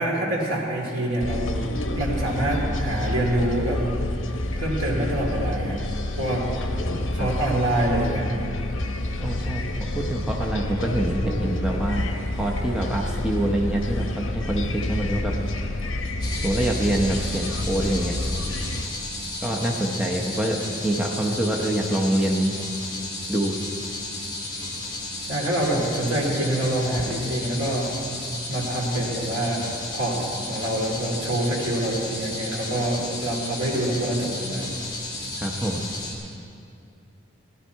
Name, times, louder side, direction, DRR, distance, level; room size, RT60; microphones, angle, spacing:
voice 1, 0.0-1.7 1.9-3.8 4.6-5.8 6.2-6.5 7.1-8.3 25.3-27.9 28.5-34.7, right 1 dB, 75° right, -2 dB, 2.6 m, -26 dB
sound 1, 1.2-18.8, left 1 dB, 65° left, 0.9 m, -28 dB
voice 2, 9.2-15.6 16.4-18.2 19.4-22.5 23.3-23.6 35.4-35.8, right 1 dB, 5° right, -2 dB, 0.7 m, -26 dB
sound 2, 16.2-36.1, left 2 dB, 20° left, 2.7 m, -33 dB
16.5 x 11.0 x 4.6 m, 2.5 s
head